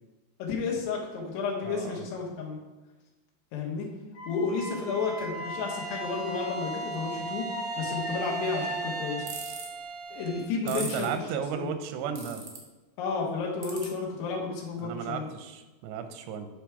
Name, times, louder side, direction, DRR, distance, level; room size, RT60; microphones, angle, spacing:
voice 1, 0.4-2.6 3.5-3.9 4.3-7.5 7.8-9.3 10.1-11.1 11.5-11.7 13.0-15.3, left 5 dB, 85° left, -2 dB, 3.3 m, -32 dB
voice 2, 1.6-2.1 10.7-12.4 14.7-16.5, right 7 dB, 90° right, 8 dB, 2.8 m, -34 dB
Wind instrument woodwind instrument, 4.1-9.2, left 2 dB, 60° left, 2.0 m, -38 dB
Bowed string instrument, 5.3-10.6, right 5 dB, 50° right, 1.0 m, -38 dB
sound 1, 9.3-9.7 10.7-11.1 12.2-12.6 13.6-13.9, right 4 dB, 70° right, 1.3 m, -37 dB
9.9 x 3.4 x 4.7 m, 1.1 s
omnidirectional pair, 4.7 m